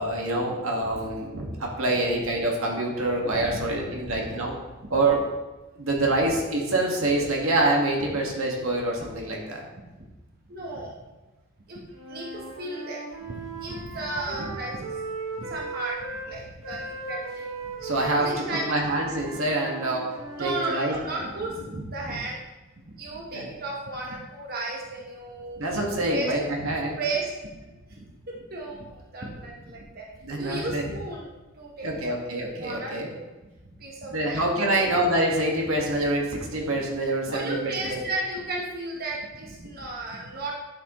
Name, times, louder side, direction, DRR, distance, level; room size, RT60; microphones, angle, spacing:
voice 1, 0.0-4.5 4.9-5.2 5.8-9.6 14.4-14.5 17.8-20.1 20.4-20.9 23.3-23.5 25.6-27.0 30.2-30.9 31.8-33.1 34.1-38.0, right 2 dB, 90° right, -1 dB, 1.8 m, -26 dB
voice 2, 3.3-3.6 4.0-4.4 4.9-5.0 10.5-10.9 11.7-11.8 12.1-15.0 15.4-16.0 16.2-17.5 18.1-18.8 20.4-21.6 21.9-22.4 23.0-25.6 26.1-26.3 27.0-27.3 27.9-30.1 30.4-32.2 32.6-34.4 34.7-34.9 36.7-36.8 37.3-40.5, right 2 dB, 45° right, -2 dB, 1.2 m, -34 dB
Wind instrument woodwind instrument, 11.9-16.3 16.6-21.4, right 3 dB, 70° right, 1.1 m, -37 dB
11.5 x 6.6 x 3.1 m, 1.1 s
head